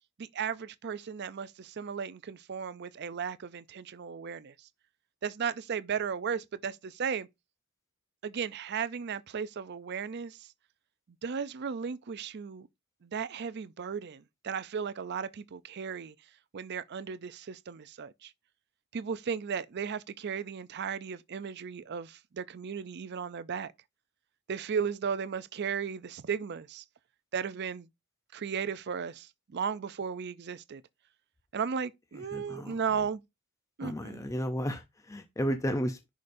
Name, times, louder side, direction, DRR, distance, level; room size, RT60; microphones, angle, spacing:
voice 1, 0.2-4.5 5.2-7.3 8.2-10.5 11.2-12.7 13.0-16.1 16.5-18.3 18.9-23.7 24.5-26.8 27.3-27.9 28.3-30.8 31.5-33.2 33.8-34.3, right 6 dB, 50° right, 0.4 m, -35 dB
voice 2, 32.1-32.8 33.8-36.1, equal, 15° left, 0.5 m, -33 dB
10.5 x 5.0 x 2.6 m
head